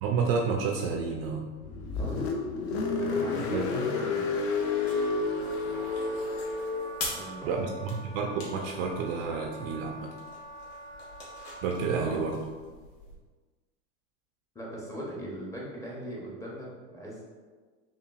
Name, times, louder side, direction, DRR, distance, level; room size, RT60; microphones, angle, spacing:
voice 1, 0.0-1.5 3.5-3.7 7.4-10.1 11.6-12.4, right 5 dB, 45° right, 1 dB, 0.4 m, -30 dB
Car, 1.5-7.0, left 4 dB, 50° left, 0.6 m, -30 dB
voice 2, 3.0-4.4 7.1-7.7 12.0-12.2 14.5-17.3, equal, 10° left, -4 dB, 0.6 m, -39 dB
sound 1, 4.3-13.2, left 2 dB, 65° left, 1.4 m, -45 dB
Wind instrument woodwind instrument, 4.6-12.1, right 2 dB, 90° left, 1.0 m, -45 dB
5.6 x 2.3 x 2.3 m, 1.4 s
supercardioid pair, 125°, 41 cm